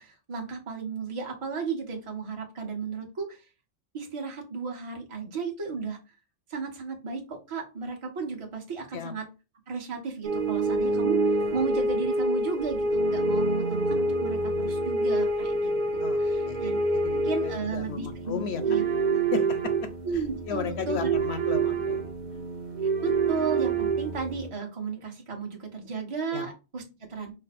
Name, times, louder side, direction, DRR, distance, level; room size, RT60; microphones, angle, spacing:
voice 1, 0.0-3.4 3.9-6.0 6.5-9.2 9.7-11.2 11.5-16.8 17.2-18.8 19.1-19.2 20.0-21.1 23.0-27.3, right 5 dB, 25° right, 1 dB, 0.9 m, -34 dB
sound 1, 10.2-24.5, right 2 dB, 50° right, 0.6 m, -27 dB
voice 2, 16.9-18.6 19.3-19.9 20.5-22.1 26.3-26.5, left 6 dB, 65° left, 9 dB, 0.8 m, -34 dB
5.4 x 2.0 x 4.1 m, 0.30 s
omnidirectional pair, 1.3 m